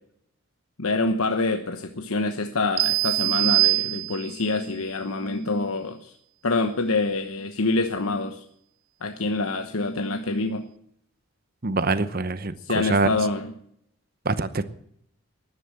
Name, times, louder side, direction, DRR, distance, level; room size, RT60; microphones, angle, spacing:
voice 1, 0.8-6.1 6.4-8.4 9.0-10.7 12.7-13.5, left 3 dB, 80° left, 7 dB, 1.1 m, -26 dB
sound 1, 2.8-4.5, right 25 dB, 85° right, 0.6 m, -23 dB
voice 2, 11.6-13.1 14.2-14.6, right 3 dB, 40° right, 14 dB, 0.9 m, -24 dB
12.5 x 11.5 x 7.7 m, 0.69 s
head